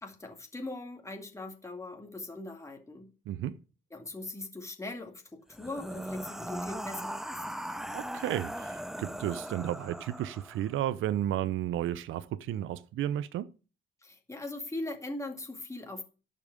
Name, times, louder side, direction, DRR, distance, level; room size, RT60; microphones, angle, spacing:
voice 1, 0.0-3.1 3.9-7.4 14.0-16.0, left 2 dB, 15° left, 2.2 m, -40 dB
voice 2, 3.3-3.6 7.9-13.5, right 12 dB, 80° right, 0.8 m, -33 dB
sound 1, 5.5-10.7, equal, ahead, 0.7 m, -39 dB
11.5 x 5.4 x 8.4 m
cardioid pair, 90°, 20 cm